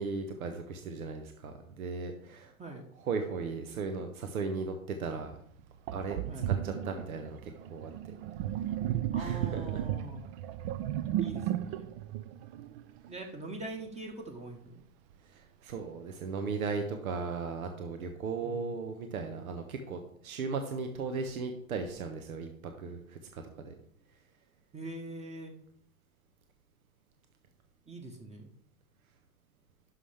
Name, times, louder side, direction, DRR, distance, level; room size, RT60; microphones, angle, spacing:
voice 1, 0.0-5.3 5.9-6.2 6.5-8.1 9.1-9.8 15.2-23.7, right 4 dB, 80° right, 6 dB, 1.1 m, -37 dB
Sink (filling or washing), 5.2-5.3 5.9-13.2, right 11 dB, 45° right, 0.6 m, -34 dB
voice 2, 9.1-10.2 11.2-11.9 13.1-14.8 18.4-18.6 24.7-25.5 27.9-28.5, right 2 dB, 15° right, 2 dB, 1.1 m, -43 dB
11.5 x 5.8 x 3.4 m, 0.68 s
hypercardioid pair, 105°, 42 cm